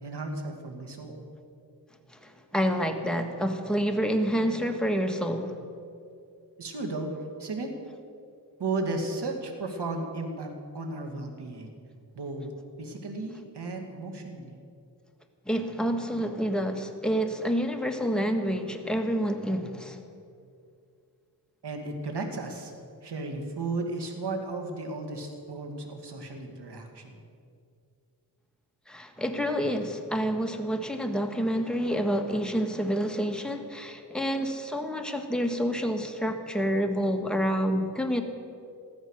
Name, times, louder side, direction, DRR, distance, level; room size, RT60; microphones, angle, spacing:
voice 1, 0.0-1.2 6.6-7.1 7.4-7.7 8.6-11.7 12.2-12.5 12.8-14.6 21.6-22.7 23.0-27.2, right 2 dB, 75° right, 3 dB, 2.2 m, -34 dB
voice 2, 2.1-5.6 15.5-20.0 28.9-38.2, equal, ahead, 4 dB, 1.5 m, -28 dB
15.0 x 13.5 x 6.4 m, 2.4 s
cardioid pair, 65°, 41 cm